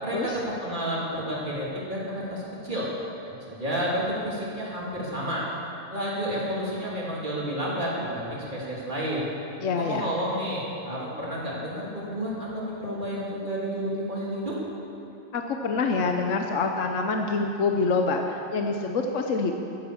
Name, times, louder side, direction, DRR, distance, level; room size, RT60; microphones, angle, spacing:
voice 1, 0.0-2.9 3.3-5.5 5.9-9.3 9.7-14.5, equal, 30° right, -5 dB, 3.2 m, -30 dB
voice 2, 9.6-10.1 15.3-19.5, left 4 dB, 60° left, 3 dB, 1.1 m, -26 dB
14.0 x 11.0 x 7.2 m, 2.9 s
omnidirectional pair, 1.6 m